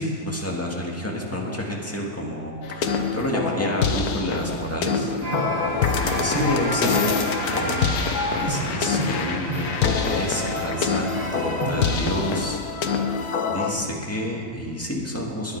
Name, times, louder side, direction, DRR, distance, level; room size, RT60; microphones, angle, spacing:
voice 1, 0.0-5.1 5.9-12.9 13.5-15.6, equal, 10° left, -2 dB, 1.8 m, -29 dB
sound 1, 2.6-13.7, left 5 dB, 75° left, 1.4 m, -25 dB
sound 2, 5.2-12.1, right 2 dB, 30° right, 1.0 m, -31 dB
20.0 x 9.7 x 4.8 m, 2.2 s
omnidirectional pair, 1.6 m